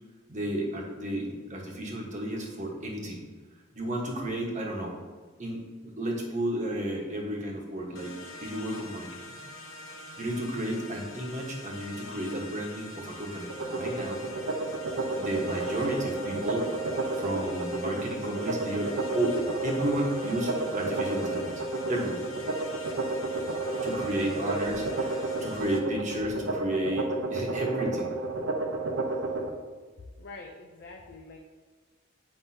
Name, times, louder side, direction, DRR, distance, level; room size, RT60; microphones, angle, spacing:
voice 1, 0.3-3.3 3.7-5.0 5.4-9.4 10.2-14.2 15.2-16.7 17.2-21.6 21.9-22.3 23.8-28.2, right 1 dB, 40° right, -1 dB, 1.2 m, -32 dB
sound 1, 7.9-25.8, left 2 dB, 90° left, 0.8 m, -45 dB
sound 2, 13.5-29.5, right 2 dB, 90° right, 0.8 m, -31 dB
voice 2, 30.2-31.4, left 3 dB, 60° left, 1 dB, 0.6 m, -45 dB
7.6 x 5.4 x 2.8 m, 1.5 s
head